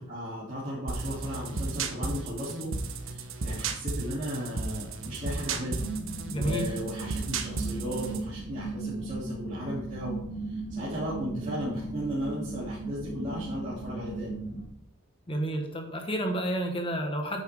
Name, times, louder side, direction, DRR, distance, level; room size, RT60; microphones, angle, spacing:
voice 1, 0.1-2.7 3.0-5.9 6.3-10.2 10.5-14.4, equal, 35° right, -9 dB, 3.1 m, -36 dB
sound 1, 0.9-8.3, right 3 dB, 85° right, 1.1 m, -34 dB
sound 2, 5.8-14.7, right 3 dB, 65° left, 3.3 m, -37 dB
voice 2, 6.3-6.7 15.3-17.4, right 1 dB, 25° left, 3 dB, 1.5 m, -30 dB
10.0 x 9.0 x 3.7 m, 0.74 s
head